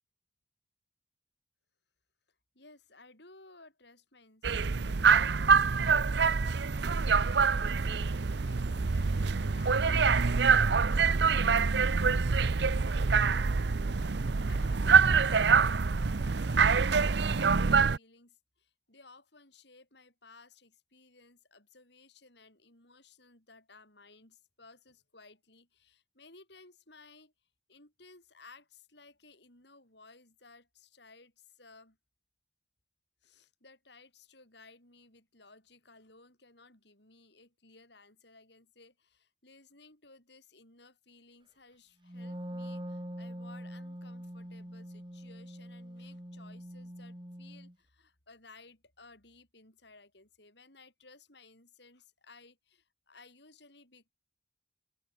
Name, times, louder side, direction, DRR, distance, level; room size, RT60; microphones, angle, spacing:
voice 1, 2.5-12.2 14.0-27.3 27.7-32.0 33.2-54.1, left 3 dB, 60° left, 7.6 m, -58 dB
sound 1, 4.4-18.0, right 5 dB, 60° right, 0.6 m, -25 dB
Wind instrument woodwind instrument, 42.0-47.7, equal, 25° right, 3.5 m, -43 dB
open air
head